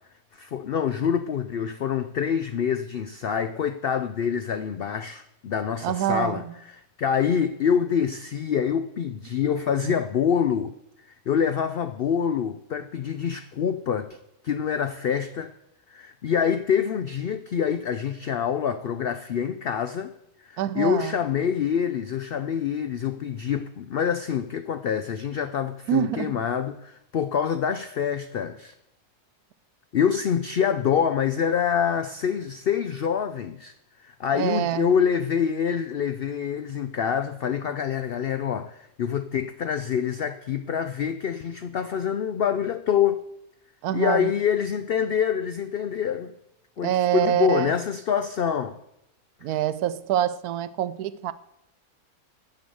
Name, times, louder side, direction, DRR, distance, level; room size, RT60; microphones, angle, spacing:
voice 1, 0.3-10.7 11.1-14.2 14.4-15.5 15.9-20.1 20.4-28.7 29.9-33.7 34.0-43.2 43.9-46.3 46.8-48.8, left 8 dB, 85° left, 0.5 m, -26 dB
voice 2, 5.8-6.5 9.8-9.9 20.6-21.1 25.9-26.4 34.3-34.9 43.8-44.3 46.8-47.7 49.4-51.3, right 11 dB, 80° right, 1.1 m, -26 dB
9.3 x 6.9 x 7.8 m
omnidirectional pair, 1.6 m